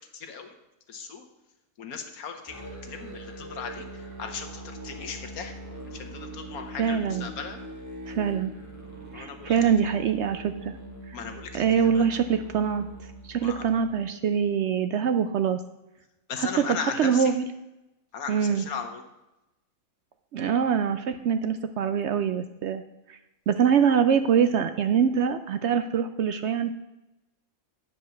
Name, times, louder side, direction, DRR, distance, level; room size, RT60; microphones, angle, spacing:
voice 1, 0.1-0.5 0.9-1.2 1.8-5.5 5.9-7.6 9.1-9.7 11.1-12.1 13.4-13.7 16.3-17.4 18.1-19.0, left 6 dB, 85° left, 5 dB, 1.6 m, -37 dB
Musical instrument, 2.5-14.1, right 1 dB, 10° right, 1.5 m, -42 dB
voice 2, 6.8-7.3 8.1-8.5 9.1-10.8 11.1-11.2 11.5-12.9 13.2-15.6 16.4-17.5 18.3-18.6 20.3-22.8 23.1-23.2 23.5-26.7, right 7 dB, 65° right, 10 dB, 0.7 m, -24 dB
9.3 x 5.0 x 7.0 m, 0.94 s
omnidirectional pair, 1.5 m